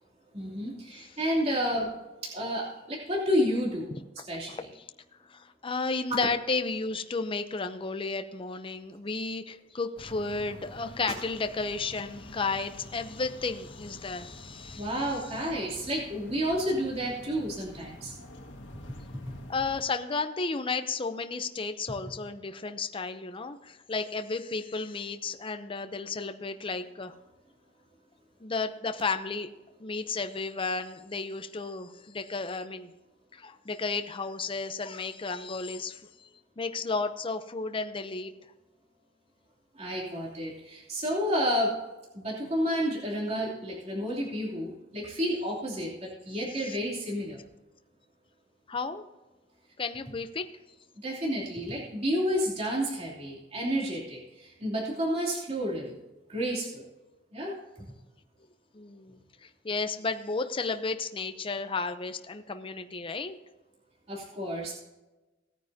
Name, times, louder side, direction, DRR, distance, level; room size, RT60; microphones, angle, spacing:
voice 1, 0.3-2.0 2.2-3.9 4.3-4.7 14.8-18.1 19.3-19.4 39.7-41.7 42.1-47.4 51.0-55.9 56.3-56.8 57.3-57.9 64.1-64.7, equal, 35° right, -5 dB, 3.0 m, -30 dB
voice 2, 5.3-14.9 19.5-27.1 28.4-29.5 29.8-32.9 33.3-36.3 36.6-38.3 46.6-46.8 48.7-49.1 49.8-50.5 58.7-63.4, left 4 dB, 30° left, 8 dB, 0.6 m, -33 dB
sound 1, 10.0-19.8, left 1 dB, 75° left, 1.8 m, -47 dB
18.0 x 9.5 x 2.8 m, 1.1 s
head